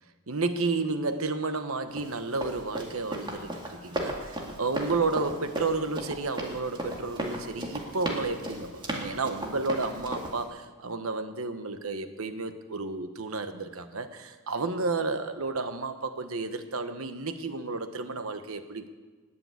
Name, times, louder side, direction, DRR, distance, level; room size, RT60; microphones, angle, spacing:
voice 1, 0.3-18.9, right 3 dB, 70° right, 9 dB, 1.2 m, -32 dB
Run, 2.0-10.4, right 1 dB, 20° right, 2.3 m, -35 dB
20.0 x 7.0 x 8.3 m, 1.4 s
head